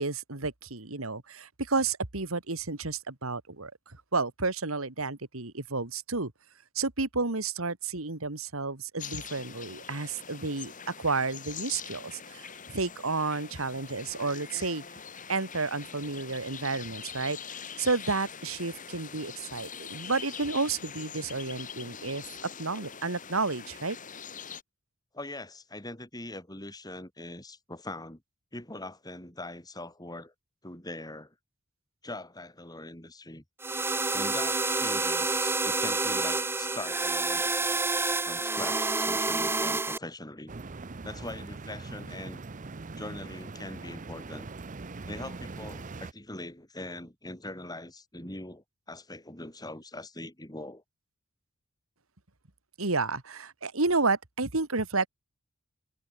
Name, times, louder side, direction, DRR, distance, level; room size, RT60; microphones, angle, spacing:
voice 1, 0.0-6.3 6.8-10.7 11.0-14.8 15.3-22.2 22.6-24.0 52.8-55.1, right 3 dB, 80° right, 2.3 m, -31 dB
sound 1, 9.0-24.6, left 7 dB, 40° left, 3.6 m, -43 dB
voice 2, 25.1-28.2 28.5-30.3 30.6-31.3 32.0-33.4 34.1-37.5 38.2-40.5 41.0-42.4 43.0-44.5 45.1-50.8, left 2 dB, 20° left, 5.5 m, -42 dB
sound 2, 33.6-40.0, right 3 dB, 10° right, 1.0 m, -28 dB
sound 3, 40.5-46.1, right 3 dB, 40° right, 0.7 m, -41 dB
head